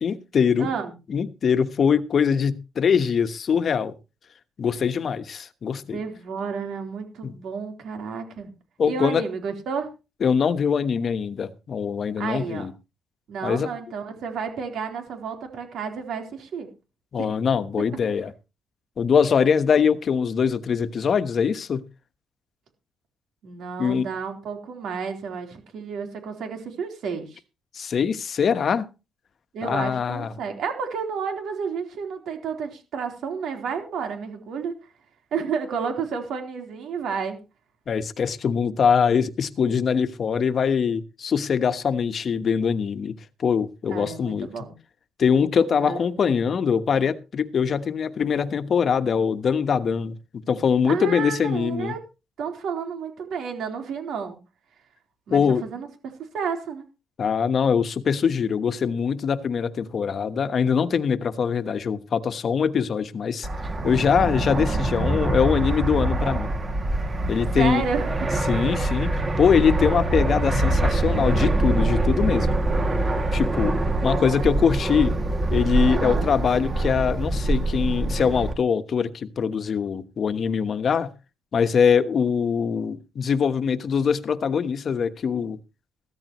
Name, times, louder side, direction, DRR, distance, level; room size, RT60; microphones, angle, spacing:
voice 1, 0.0-0.7 1.1-3.9 4.6-6.0 7.2-7.3 8.8-9.2 10.2-12.7 13.4-13.7 17.1-18.3 19.0-21.8 23.8-24.1 27.7-28.9 29.6-30.3 37.9-43.1 43.4-44.5 45.2-50.2 50.5-51.9 55.3-55.6 57.2-63.5 63.8-66.5 67.3-67.8 68.4-72.6 73.3-73.7 74.0-75.1 75.5-81.1 81.5-85.6, left 6 dB, 50° left, 1.2 m, -23 dB
voice 2, 0.6-1.0 5.9-8.5 8.9-9.9 12.2-12.7 13.3-16.7 17.2-17.3 23.4-27.4 29.5-34.7 35.3-37.4 43.9-44.7 45.8-46.3 50.9-52.0 52.4-54.4 55.3-55.9 56.3-56.8 67.5-68.3 73.9-74.6 76.0-76.3, right 6 dB, 75° right, 3.8 m, -31 dB
Fixed-wing aircraft airplane, 63.4-78.5, right 2 dB, 35° right, 2.4 m, -24 dB
15.0 x 13.5 x 3.1 m
cardioid pair, 90°, 0 cm